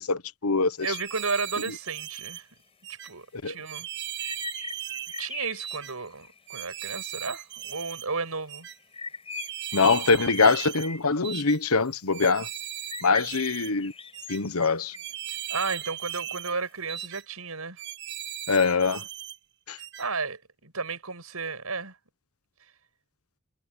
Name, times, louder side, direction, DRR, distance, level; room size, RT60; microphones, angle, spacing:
voice 1, 0.0-0.8 3.4-3.6 9.7-12.5 13.0-13.9 14.3-14.9 18.5-19.0 19.7-19.8, left 4 dB, 85° left, 1.2 m, -23 dB
sound 1, 0.8-1.8 2.7-2.8 3.1-6.7 7.5-7.8 8.0-16.7, left 4 dB, 25° left, 6.7 m, -43 dB
sound 2, 0.8-2.4 2.8-3.1 3.7-5.3 5.6-5.9 6.5-8.1 8.5-8.8 9.3-10.9 11.2-11.6 12.1-13.7 14.1-14.4 14.9-16.6 16.9-17.2 17.8-19.4 19.8-20.1, right 11 dB, 55° right, 1.7 m, -37 dB
voice 2, 0.8-2.4 3.0-3.9 5.2-8.7 15.5-17.8 20.0-21.9, right 4 dB, 85° right, 6.3 m, -33 dB
head